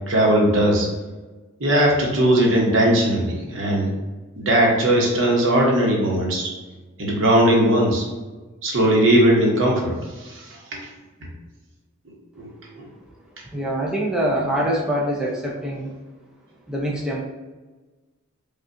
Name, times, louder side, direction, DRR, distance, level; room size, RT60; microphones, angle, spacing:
voice 1, 0.1-0.9 1.6-3.9 4.4-6.5 7.0-8.1 8.6-10.9 11.2-11.3 12.4-12.9, right 1 dB, 70° right, -2 dB, 1.0 m, -19 dB
voice 2, 13.5-15.9 16.7-17.2, right 1 dB, 5° right, -4 dB, 0.5 m, -24 dB
5.1 x 2.4 x 2.6 m, 1.2 s
head